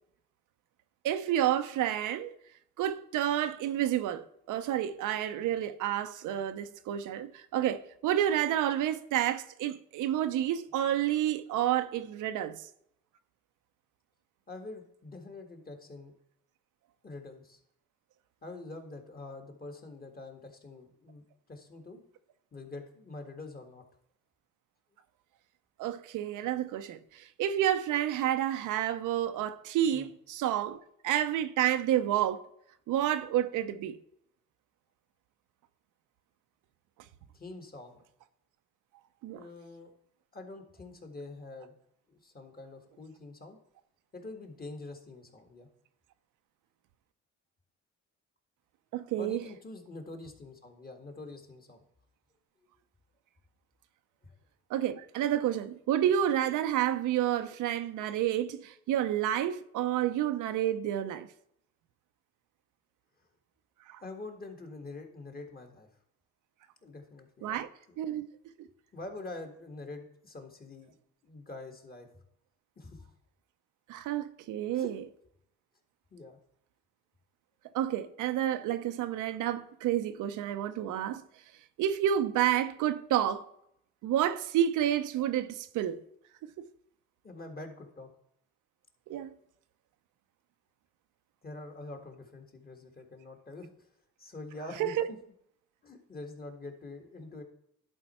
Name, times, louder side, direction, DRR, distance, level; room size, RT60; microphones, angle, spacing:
voice 1, 1.0-2.3 2.8-12.7 25.8-32.4 32.9-34.0 39.2-39.4 48.9-49.4 54.7-61.3 63.9-64.0 67.4-67.7 68.0-68.3 73.9-75.0 77.7-81.2 81.8-83.4 84.0-86.0 86.6-86.7 89.1-89.3 94.8-95.1, right 11 dB, 85° right, 0.7 m, -30 dB
voice 2, 14.5-16.1 17.0-17.6 18.4-21.2 21.5-22.0 22.5-23.8 29.9-30.1 37.3-38.0 39.3-39.9 40.3-41.7 42.1-43.6 44.1-45.7 49.2-51.8 54.2-54.4 63.2-63.3 64.0-65.9 66.8-67.6 67.9-68.0 68.6-71.0 71.2-72.2 72.8-73.1 74.7-74.9 76.1-76.4 87.2-88.1 91.4-93.9 94.2-95.2 95.8-97.4, left 2 dB, 30° left, 1.8 m, -45 dB
11.0 x 4.5 x 4.3 m
cardioid pair, 90°, 30 cm